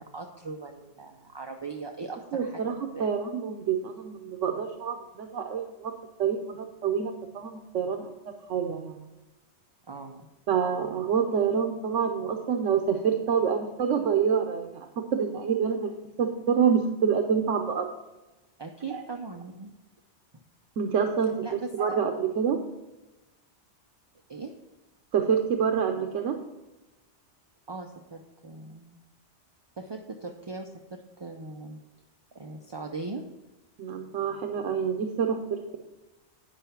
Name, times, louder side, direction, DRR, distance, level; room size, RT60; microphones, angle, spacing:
voice 1, 0.0-2.6 2.9-3.1 9.9-10.3 18.6-19.7 21.4-21.7 24.3-24.5 27.7-29.0 29.8-31.8 32.3-33.3, right 3 dB, 30° right, 3 dB, 0.5 m, -39 dB
voice 2, 2.3-5.9 6.2-9.0 10.5-17.9 18.9-19.0 20.8-22.6 25.1-26.4 33.8-35.8, right 7 dB, 90° right, 4 dB, 1.1 m, -27 dB
10.0 x 5.7 x 5.7 m, 1.1 s
omnidirectional pair, 1.2 m